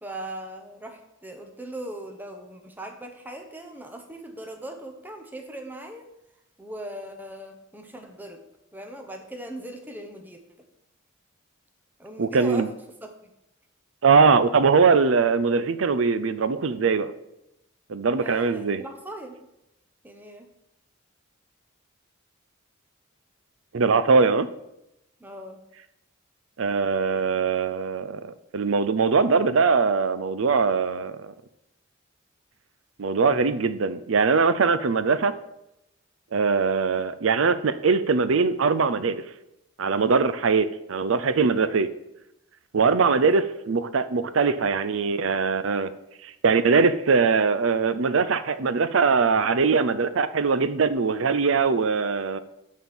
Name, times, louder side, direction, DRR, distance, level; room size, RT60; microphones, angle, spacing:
voice 1, 0.0-6.1 6.6-8.4 8.7-10.4 12.0-13.1 18.2-19.4 20.0-20.5 25.2-25.6, right 1 dB, 10° right, 4 dB, 0.9 m, -39 dB
voice 2, 12.2-12.7 14.0-17.1 17.9-18.8 23.7-24.5 26.6-31.3 33.0-35.3 36.3-39.2 39.8-41.9 42.7-45.9 46.2-52.4, right 5 dB, 75° right, 13 dB, 0.6 m, -21 dB
9.4 x 4.3 x 7.2 m, 0.87 s
head